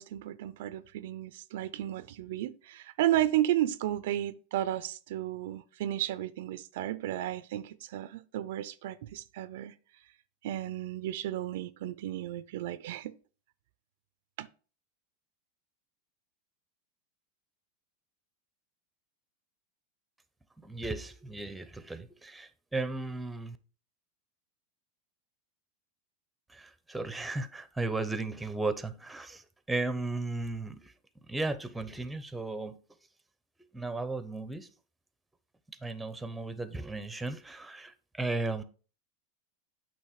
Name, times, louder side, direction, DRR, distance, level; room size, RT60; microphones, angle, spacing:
voice 1, 0.0-9.7 10.4-13.1 14.4-14.5, right 13 dB, 70° right, 0.4 m, -33 dB
voice 2, 20.6-23.6 26.5-30.9 31.3-32.8 33.7-34.7 35.7-38.6, right 2 dB, 5° right, 0.7 m, -35 dB
8.4 x 3.0 x 4.9 m
hypercardioid pair, 110°, 0 cm